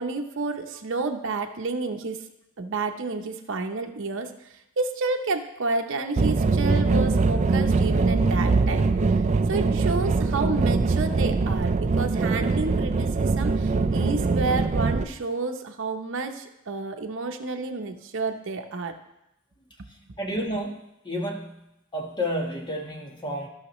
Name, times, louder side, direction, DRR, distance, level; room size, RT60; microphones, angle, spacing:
voice 1, 0.0-2.2 2.6-8.9 9.5-18.9, right 3 dB, 60° right, 4 dB, 0.8 m, -30 dB
sound 1, 6.2-15.0, right 3 dB, 35° right, 0.4 m, -22 dB
voice 2, 19.9-20.8 21.0-21.6 21.9-23.5, equal, 20° left, 1 dB, 1.2 m, -31 dB
15.5 x 5.7 x 3.1 m, 0.88 s
head